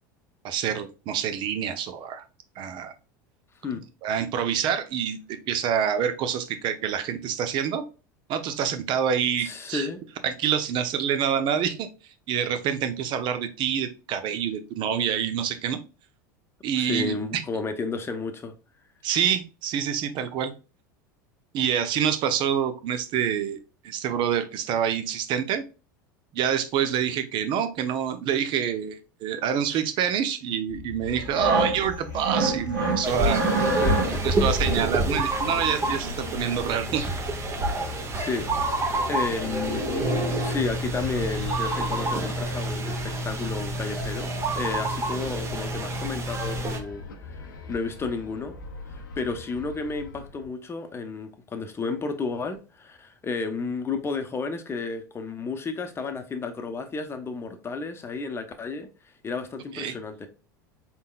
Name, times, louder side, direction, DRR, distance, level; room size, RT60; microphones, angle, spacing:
voice 1, 0.4-2.2 2.6-2.9 4.0-7.8 8.3-9.9 10.2-11.9 12.3-15.8 16.6-17.4 19.0-20.5 21.5-23.6 23.8-25.6 26.3-33.4 34.2-37.0 37.3-37.5 59.7-59.9, right 8 dB, 50° right, 0.7 m, -27 dB
voice 2, 9.4-10.0 16.8-18.5 29.7-29.9 33.7-34.3 37.8-38.8 39.1-39.9 40.4-48.6 48.9-58.9 59.2-60.3, left 4 dB, 25° left, 0.8 m, -32 dB
sound 1, 30.7-50.5, left 4 dB, 85° left, 0.7 m, -40 dB
sound 2, 31.1-34.3 35.3-36.5 37.6-37.7 38.0-38.1 38.4-38.6 38.9-39.1 39.3-40.6 41.1-42.7 43.1-43.3, right 2 dB, 90° right, 2.2 m, -29 dB
sound 3, 33.0-46.8, right 1 dB, 25° right, 1.0 m, -28 dB
4.2 x 3.6 x 2.4 m
hypercardioid pair, 85°, 10 cm